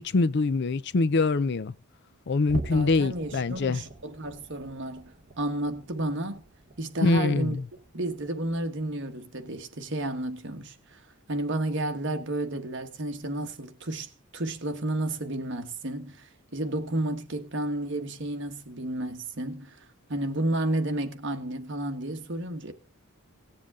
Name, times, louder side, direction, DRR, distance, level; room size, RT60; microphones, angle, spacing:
voice 1, 0.0-1.7 2.3-3.8 7.0-7.6, left 3 dB, 50° left, 0.5 m, -24 dB
sound 1, 2.4-9.1 9.5-9.8 10.2-10.3 10.9-11.0, right 2 dB, 35° right, 1.0 m, -44 dB
voice 2, 2.7-6.4 6.8-7.6 7.9-11.0 11.3-22.7, right 1 dB, 55° right, 1.4 m, -32 dB
18.0 x 7.4 x 3.6 m
head